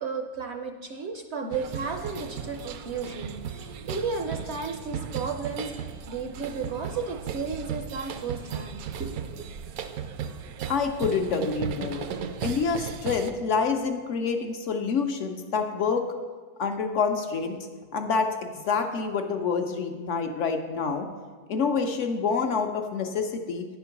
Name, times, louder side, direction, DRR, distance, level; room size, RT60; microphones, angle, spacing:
voice 1, 0.0-9.4, right 4 dB, 60° right, 3 dB, 0.7 m, -34 dB
sound 1, 1.5-13.3, right 7 dB, 80° right, 1.0 m, -36 dB
voice 2, 10.7-12.1 12.4-16.0 16.6-17.6 17.9-21.1 21.5-23.7, left 5 dB, 65° left, 5 dB, 0.8 m, -27 dB
9.3 x 4.5 x 5.8 m, 1.5 s
omnidirectional pair, 1.5 m